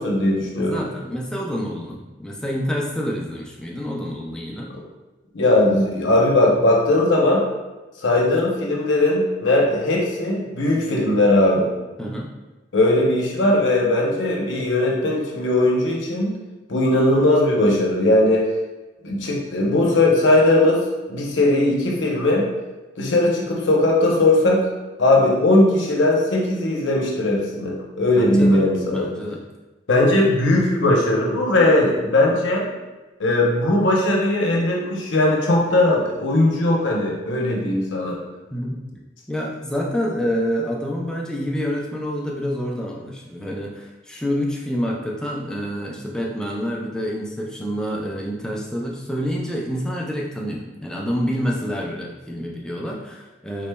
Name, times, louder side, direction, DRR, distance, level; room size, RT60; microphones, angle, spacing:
voice 1, 0.0-0.8 4.7-4.8 5.3-7.5 8.0-11.7 12.7-16.3 16.7-18.5 19.0-22.5 23.0-24.7 25.0-29.1 29.9-32.7 33.2-38.2, left 1 dB, 90° left, -2 dB, 0.7 m, -19 dB
voice 2, 0.6-4.7 12.0-12.3 28.1-28.6 28.9-29.4 38.5-38.8 39.3-53.7, equal, 5° left, -2 dB, 0.4 m, -27 dB
3.9 x 3.2 x 2.2 m, 1.2 s
head